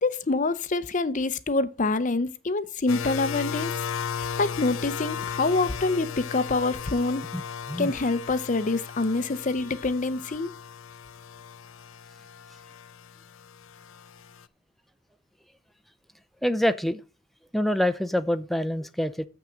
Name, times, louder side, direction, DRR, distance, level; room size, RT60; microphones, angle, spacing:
voice 1, 0.0-3.7 4.2-7.2 7.8-10.5, left 3 dB, 40° left, 0.7 m, -26 dB
sound 1, 2.9-14.5, left 7 dB, 80° left, 0.5 m, -36 dB
voice 2, 16.4-17.0 17.5-19.3, left 1 dB, ahead, 0.5 m, -26 dB
7.2 x 6.1 x 6.2 m
head